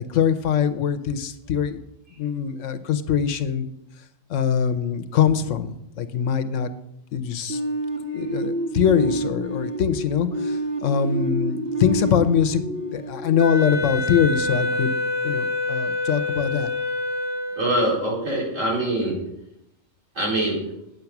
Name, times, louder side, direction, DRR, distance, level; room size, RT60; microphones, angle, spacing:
voice 1, 0.0-1.8 2.2-3.7 4.3-6.7 7.1-7.6 8.1-12.6 12.9-14.9 15.2-16.7, left 8 dB, 70° left, 10 dB, 1.1 m, -23 dB
sound 1, 7.5-14.3, right 1 dB, 50° right, 1.6 m, -29 dB
Wind instrument woodwind instrument, 13.4-17.9, left 2 dB, ahead, 1.9 m, -26 dB
voice 2, 17.6-19.2 20.2-20.6, right 1 dB, 75° right, -5 dB, 4.6 m, -23 dB
9.2 x 8.0 x 5.9 m, 0.81 s
omnidirectional pair, 1.4 m